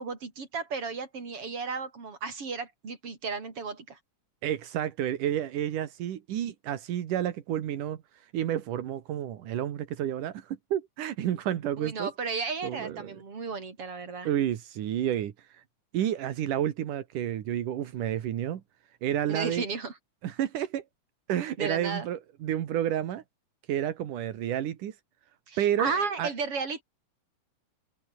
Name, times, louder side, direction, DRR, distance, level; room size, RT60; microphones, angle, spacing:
voice 1, 0.0-4.0 11.8-14.3 19.3-19.9 21.6-22.1 25.5-26.8, right 4 dB, 45° right, 5.4 m, -34 dB
voice 2, 4.4-8.0 8.3-12.1 12.6-13.2 14.2-15.6 15.9-18.6 19.0-19.7 20.2-20.8 21.3-23.2 23.7-24.9 25.6-25.9 26.2-26.3, right 11 dB, 85° right, 3.2 m, -30 dB
omnidirectional pair, 3.5 m